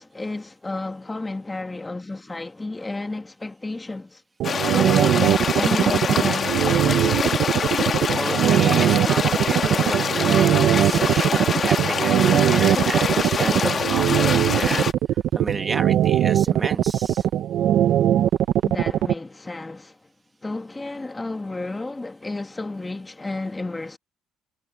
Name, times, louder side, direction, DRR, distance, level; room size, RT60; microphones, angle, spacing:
voice 1, 0.0-4.2 4.7-7.5 18.6-20.1 20.4-24.0, left 2 dB, 15° left, 1.5 m, -32 dB
sound 1, 4.4-14.9, left 6 dB, 35° left, 1.7 m, -25 dB
sound 2, 4.4-19.1, right 11 dB, 65° right, 1.1 m, -20 dB
voice 2, 8.1-17.3, right 3 dB, 20° right, 2.0 m, -32 dB
cardioid pair, 120°, 0 cm